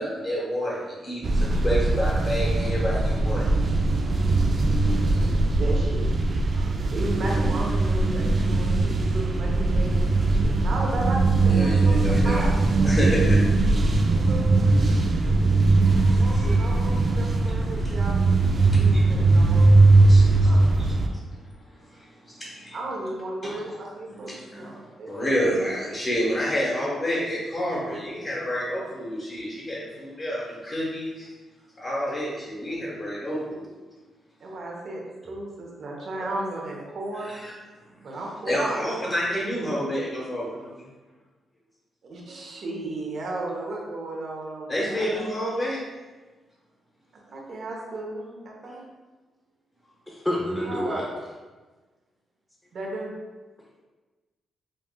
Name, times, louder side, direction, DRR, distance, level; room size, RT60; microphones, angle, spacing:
voice 1, 0.0-3.5 6.5-6.6 11.4-12.5 12.8-13.6 15.8-16.8 18.7-19.1 20.1-20.8 21.8-22.8 24.1-24.7 25.1-31.3 31.8-33.7 37.2-37.5 38.4-40.5 44.7-45.8, equal, 35° left, -7 dB, 1.0 m, -29 dB
sound 1, 1.2-21.1, right 2 dB, 45° right, 0.3 m, -20 dB
voice 2, 4.8-6.1 6.9-12.6 13.8-14.7 15.9-21.1 22.7-25.3 34.4-37.4 38.0-38.9 40.5-40.9 42.0-45.2 47.3-48.8 50.7-51.1 52.7-53.1, right 2 dB, 60° right, -2 dB, 0.8 m, -35 dB
voice 3, 50.1-51.0, left 1 dB, 10° left, -4 dB, 0.5 m, -29 dB
5.3 x 2.4 x 2.2 m, 1.3 s
cardioid pair, 105°, 0 cm